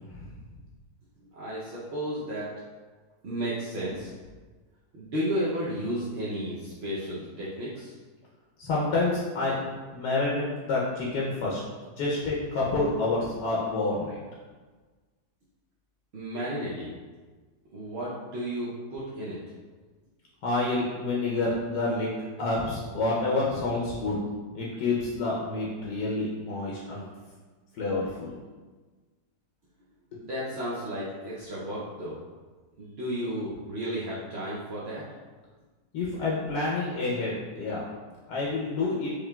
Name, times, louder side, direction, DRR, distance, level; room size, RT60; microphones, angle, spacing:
voice 1, 1.3-2.5 3.2-4.1 4.9-7.9 16.1-16.9 17.7-19.4 30.1-32.2 32.8-35.0, equal, 60° right, -8 dB, 0.7 m, -33 dB
voice 2, 8.6-11.6 12.0-14.2 20.4-22.1 22.4-24.2 24.5-27.0 27.7-28.3 30.1-30.2 35.9-37.8 38.3-39.1, left 2 dB, 85° left, -5 dB, 1.3 m, -28 dB
4.9 x 3.0 x 2.2 m, 1.4 s
omnidirectional pair, 1.7 m